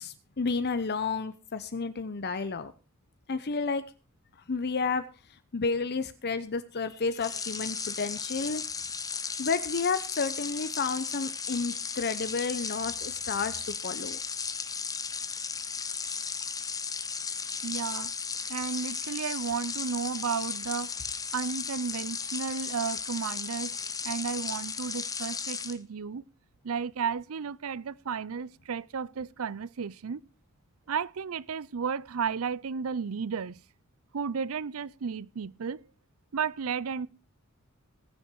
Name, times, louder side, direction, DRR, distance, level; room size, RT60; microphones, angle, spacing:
voice 1, 0.0-2.7 3.3-3.8 4.5-5.0 5.5-8.6 9.4-14.2, left 4 dB, 50° left, 0.8 m, -31 dB
sound 1, 7.2-25.8, left 5 dB, 15° left, 0.7 m, -35 dB
voice 2, 17.6-18.1 18.5-20.9 21.3-23.8 24.0-26.2 26.6-30.2 30.9-33.6 34.1-35.8 36.3-37.1, right 6 dB, 80° right, 0.5 m, -33 dB
19.0 x 7.1 x 4.6 m
head